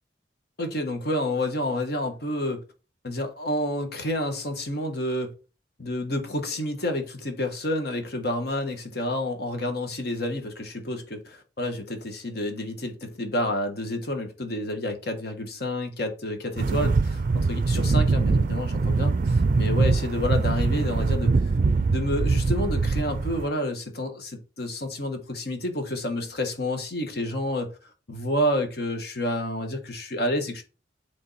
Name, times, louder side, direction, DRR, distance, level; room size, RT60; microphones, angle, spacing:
voice 1, 0.6-2.6 3.0-5.3 5.8-21.3 21.9-27.7 28.1-30.6, left 1 dB, 60° left, 1.4 m, -29 dB
sound 1, 16.6-23.5, right 3 dB, 50° right, 0.4 m, -23 dB
8.5 x 3.6 x 4.2 m
head